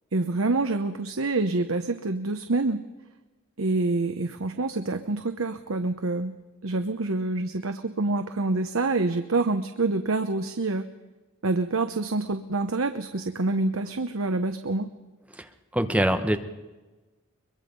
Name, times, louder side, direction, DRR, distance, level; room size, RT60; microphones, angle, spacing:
voice 1, 0.1-2.8 3.6-6.3 6.6-10.9 11.4-14.9, right 3 dB, 70° right, 8 dB, 0.9 m, -26 dB
voice 2, 15.7-16.4, right 1 dB, 5° right, 6 dB, 1.2 m, -23 dB
23.0 x 22.5 x 5.4 m, 1.2 s
head